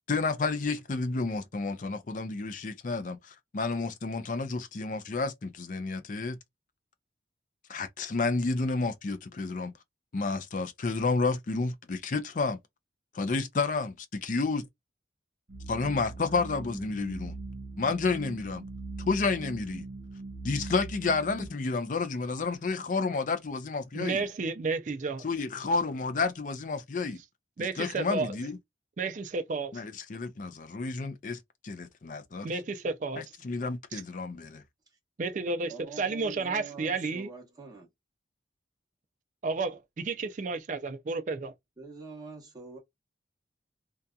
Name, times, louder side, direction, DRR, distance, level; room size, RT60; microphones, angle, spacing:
voice 1, 0.1-6.4 7.7-9.7 10.1-12.6 13.1-14.7 15.7-17.3 17.8-18.6 19.1-19.9 20.4-24.2 25.2-27.2 27.6-28.6 29.7-32.5 33.2-34.6, left 3 dB, 45° left, 0.4 m, -30 dB
sound 1, 15.5-21.5, right 3 dB, 65° right, 1.1 m, -41 dB
voice 2, 23.9-25.2 27.6-28.3 29.0-29.8 32.4-33.2 33.9-34.0 35.2-37.3 39.4-41.5, right 3 dB, 40° right, 0.4 m, -32 dB
voice 3, 35.7-37.9 41.8-42.8, right 4 dB, 20° right, 1.0 m, -45 dB
2.7 x 2.3 x 2.2 m
head